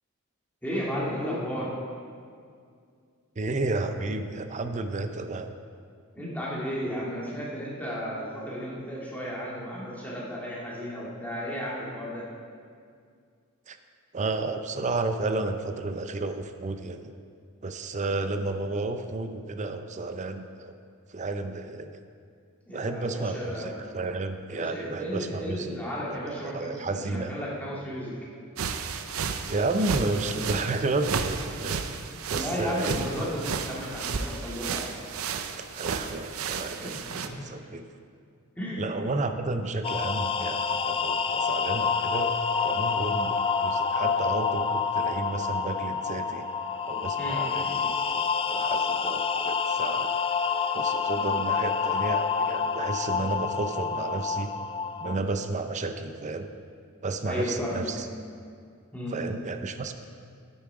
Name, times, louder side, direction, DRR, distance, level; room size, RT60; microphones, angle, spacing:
voice 1, 0.6-1.7 6.1-12.3 22.7-23.8 24.5-28.1 32.3-34.9 36.8-37.4 38.6-38.8 47.2-47.4 57.2-57.9 58.9-59.1, equal, 10° left, -6 dB, 2.1 m, -34 dB
voice 2, 3.4-5.5 13.7-13.8 14.1-17.1 17.6-20.7 21.1-21.9 22.7-25.8 26.1-27.3 29.5-31.9 32.3-33.3 35.6-37.8 38.8-42.4 42.6-46.5 46.9-50.1 50.7-54.5 55.0-56.5 57.0-58.1 59.1-59.9, right 3 dB, 35° right, 8 dB, 0.6 m, -32 dB
sound 1, 28.6-37.3, right 5 dB, 80° right, 0.6 m, -33 dB
sound 2, 39.8-55.1, left 5 dB, 25° left, 0.3 m, -28 dB
9.4 x 8.6 x 4.9 m, 2.2 s
head